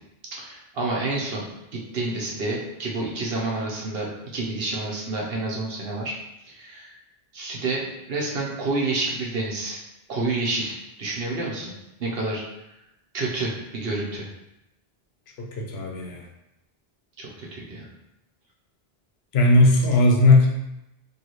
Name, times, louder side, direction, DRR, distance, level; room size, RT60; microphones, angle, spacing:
voice 1, 0.3-1.4 1.7-6.2 6.5-6.9 7.3-9.8 10.1-11.7 12.0-12.4 13.1-14.3 17.2-17.9, right 2 dB, 70° right, -3 dB, 1.1 m, -29 dB
voice 2, 15.6-16.2 19.3-20.5, left 2 dB, 80° left, 0 dB, 1.0 m, -17 dB
4.6 x 2.7 x 3.0 m, 0.89 s
omnidirectional pair, 1.0 m